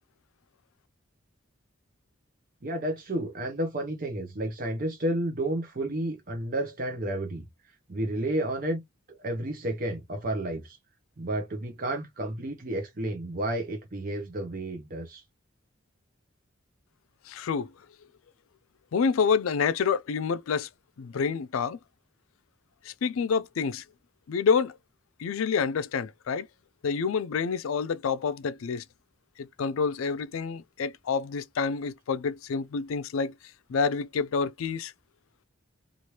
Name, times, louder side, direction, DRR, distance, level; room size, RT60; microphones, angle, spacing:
voice 1, 2.6-7.4 7.9-8.8 9.2-10.8 11.2-15.2, right 1 dB, 40° right, 0.6 m, -31 dB
voice 2, 17.3-17.7 18.9-20.7 21.0-21.8 22.8-23.8 24.3-24.8 25.2-26.5 26.8-28.8 29.4-33.3 33.7-34.9, left 5 dB, 80° left, 0.4 m, -28 dB
3.1 x 2.4 x 2.8 m
head